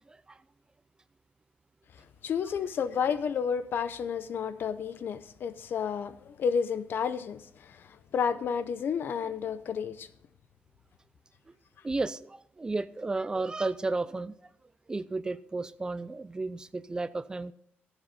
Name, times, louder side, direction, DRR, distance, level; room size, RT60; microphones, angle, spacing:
voice 1, 0.1-0.4 11.8-14.3 14.9-17.5, right 3 dB, 20° right, 0.4 m, -33 dB
voice 2, 2.2-10.1, left 7 dB, 65° left, 0.7 m, -31 dB
14.5 x 8.2 x 4.1 m
cardioid pair, 130°, 4 cm